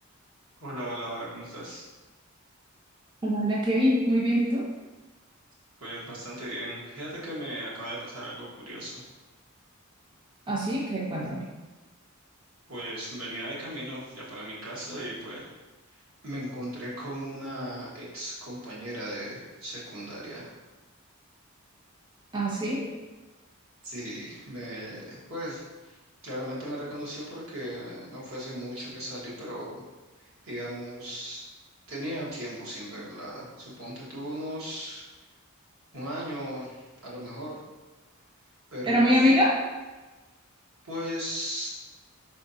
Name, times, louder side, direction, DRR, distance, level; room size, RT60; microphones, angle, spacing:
voice 1, 0.6-1.8 5.8-9.0 12.7-15.5 15.9-20.5 23.8-26.0 26.2-29.8 30.2-31.4 31.9-35.0 35.9-37.5 38.7-39.3 40.9-41.8, equal, 70° right, -6 dB, 1.4 m, -37 dB
voice 2, 3.2-4.7 10.5-11.5 22.3-22.9 38.9-39.6, equal, 20° right, -3 dB, 0.4 m, -24 dB
4.6 x 3.5 x 2.7 m, 1.2 s
head